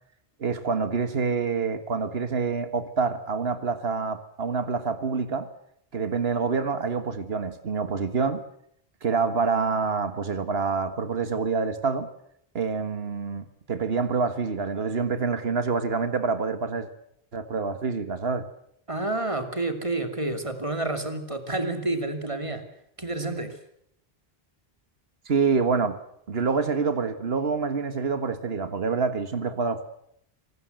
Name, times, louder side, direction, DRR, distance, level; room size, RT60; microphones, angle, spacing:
voice 1, 0.4-5.5 5.9-8.4 9.0-12.1 12.5-16.9 17.3-18.4 25.2-26.0 26.3-29.8, right 5 dB, 70° right, 10 dB, 1.8 m, -27 dB
voice 2, 18.9-22.6 23.0-23.6, right 2 dB, 30° right, 7 dB, 2.6 m, -29 dB
26.0 x 19.5 x 7.9 m, 0.71 s
omnidirectional pair, 1.1 m